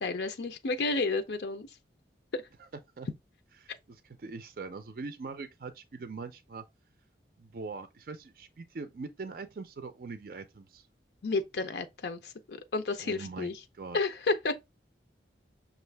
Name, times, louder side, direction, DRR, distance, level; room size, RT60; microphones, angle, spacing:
voice 1, 0.0-1.7 2.3-2.4 11.2-13.5 13.9-14.6, left 3 dB, 70° left, 0.5 m, -31 dB
voice 2, 3.6-6.6 7.4-10.9 13.0-14.0, right 4 dB, 50° right, 0.4 m, -42 dB
6.2 x 2.4 x 3.3 m
head